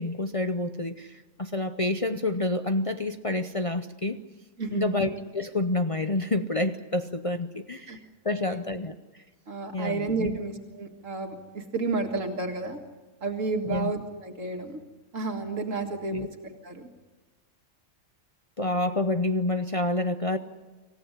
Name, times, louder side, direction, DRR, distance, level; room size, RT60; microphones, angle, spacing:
voice 1, 0.0-4.2 4.7-8.0 8.2-8.9 9.7-10.4 13.6-13.9 16.1-16.3 18.6-20.4, left 2 dB, 30° left, 7 dB, 0.7 m, -28 dB
voice 2, 4.6-5.0 7.9-8.0 8.3-8.6 9.5-12.8 13.2-14.8 15.1-16.9, right 3 dB, 80° right, 2 dB, 2.2 m, -31 dB
26.0 x 15.5 x 9.8 m, 1.2 s
omnidirectional pair, 1.3 m